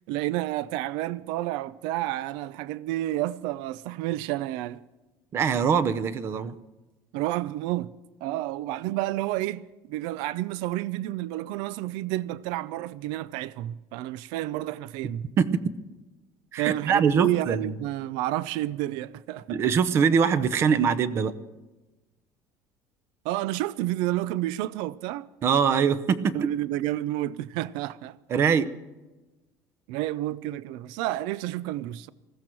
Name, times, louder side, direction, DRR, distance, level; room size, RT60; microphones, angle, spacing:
voice 1, 0.1-4.9 7.1-7.9 8.2-15.2 16.5-19.6 23.2-25.3 26.3-28.2 29.9-32.1, right 15 dB, 75° right, 0.5 m, -30 dB
voice 2, 5.3-6.5 15.4-15.7 16.5-17.7 19.5-21.3 25.4-26.5 28.3-28.7, right 6 dB, 35° right, 0.7 m, -23 dB
20.0 x 15.0 x 4.6 m
cardioid pair, 165°, 8 cm